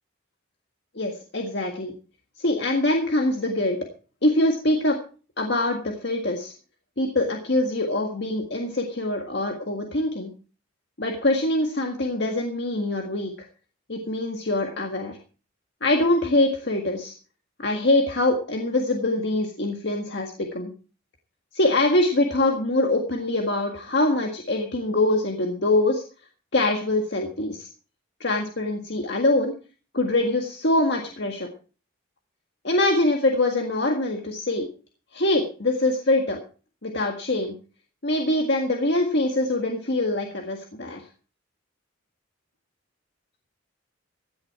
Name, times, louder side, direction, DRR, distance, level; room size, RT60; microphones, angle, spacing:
voice 1, 1.0-1.9 2.4-3.8 4.2-5.0 5.4-6.5 7.0-10.3 11.0-13.5 13.9-15.2 15.8-17.1 17.6-20.7 21.5-26.0 26.5-27.7 28.2-29.5 29.9-31.5 32.6-34.7 35.1-36.4 36.8-37.5 38.0-41.0, left 2 dB, 55° left, 3 dB, 1.8 m, -24 dB
16.5 x 10.5 x 4.7 m, 0.38 s
head